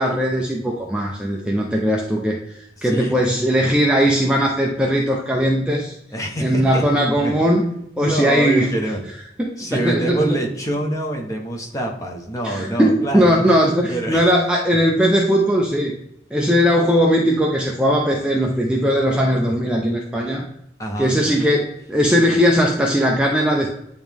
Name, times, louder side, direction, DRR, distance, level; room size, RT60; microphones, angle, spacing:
voice 1, 0.0-5.9 6.4-7.7 8.0-8.8 9.4-10.4 12.4-16.0 16.3-20.4 21.0-23.7, equal, 5° right, -1 dB, 0.5 m, -19 dB
voice 2, 2.8-3.1 6.1-6.8 7.2-7.3 8.0-9.0 9.6-13.3 13.9-14.2 20.8-21.1, right 1 dB, 20° left, 0 dB, 1.0 m, -25 dB
8.9 x 3.1 x 3.5 m, 0.79 s
head